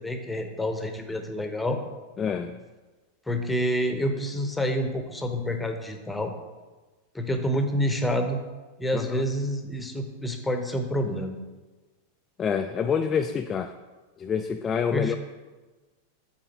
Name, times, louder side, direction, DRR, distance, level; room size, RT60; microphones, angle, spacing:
voice 1, 0.0-1.8 3.3-6.3 7.1-8.4 8.8-11.4 14.9-15.2, equal, 5° left, 5 dB, 0.8 m, -28 dB
voice 2, 2.2-2.6 8.9-9.0 12.4-13.7 14.2-15.2, left 6 dB, 25° left, 6 dB, 0.3 m, -27 dB
7.7 x 3.6 x 6.2 m, 1.3 s
figure-of-eight pair, 90°, 0 cm